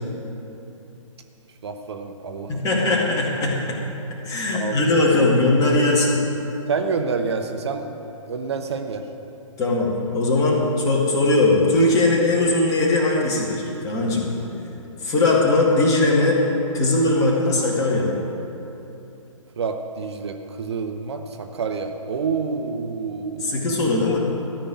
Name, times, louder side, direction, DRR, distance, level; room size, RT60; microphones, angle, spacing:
voice 1, 1.6-2.7 4.5-4.8 5.1-5.3 6.7-8.0 8.3-9.0 19.6-23.7, right 5 dB, 50° right, 6 dB, 0.9 m, -28 dB
voice 2, 2.5-3.8 4.2-6.2 9.6-14.3 15.0-16.4 16.7-18.2 23.4-24.2, left 2 dB, 20° left, -3 dB, 2.1 m, -20 dB
13.5 x 5.7 x 9.4 m, 2.9 s
figure-of-eight pair, 130°, 17 cm